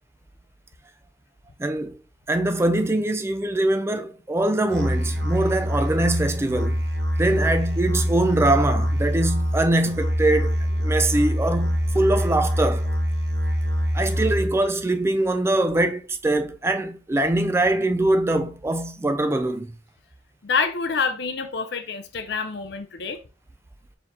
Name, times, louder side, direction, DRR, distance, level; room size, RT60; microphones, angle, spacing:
voice 1, 1.6-2.0 2.3-6.8 7.2-12.9 13.9-19.7, right 1 dB, 15° right, 0.3 m, -23 dB
Musical instrument, 4.7-14.7, equal, 65° right, 0.7 m, -24 dB
voice 2, 20.4-23.2, left 5 dB, 65° left, 0.5 m, -27 dB
4.5 x 3.6 x 2.6 m
head